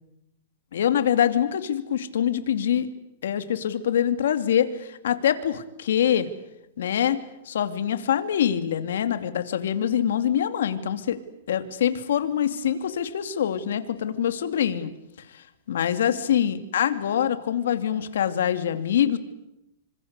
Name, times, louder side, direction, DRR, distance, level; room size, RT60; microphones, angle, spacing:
voice 1, 0.7-2.9 3.2-6.3 6.8-7.2 7.5-11.2 11.5-14.9 15.3-19.2, left 9 dB, 80° left, 10 dB, 2.6 m, -24 dB
26.5 x 26.0 x 8.2 m, 0.85 s
hypercardioid pair, 155°, 0 cm